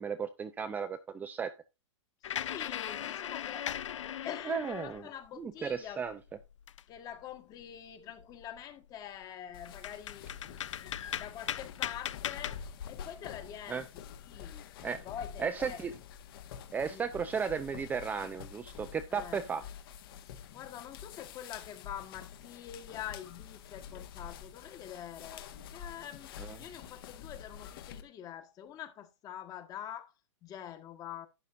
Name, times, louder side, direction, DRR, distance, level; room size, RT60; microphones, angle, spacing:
voice 1, 0.0-1.5 4.5-5.0 5.4-6.2 13.7-13.8 14.8-15.0 15.4-15.9 16.7-19.6 26.4-26.6, right 6 dB, 10° right, 0.6 m, -35 dB
sound 1, 2.2-5.3 5.7-7.2 7.6-7.7 8.1-8.6 9.2-9.3 9.6-13.1, left 10 dB, 75° left, 0.5 m, -39 dB
voice 2, 2.4-3.8 4.2-6.0 6.9-10.5 11.0-12.6 12.9-14.6 15.0-15.8 16.9-17.0 19.1-19.4 20.2-30.1 30.4-31.3, left 10 dB, 25° left, 1.5 m, -45 dB
sound 2, 9.5-28.0, left 8 dB, 50° left, 1.6 m, -48 dB
11.5 x 9.3 x 2.6 m
hypercardioid pair, 140°, 16 cm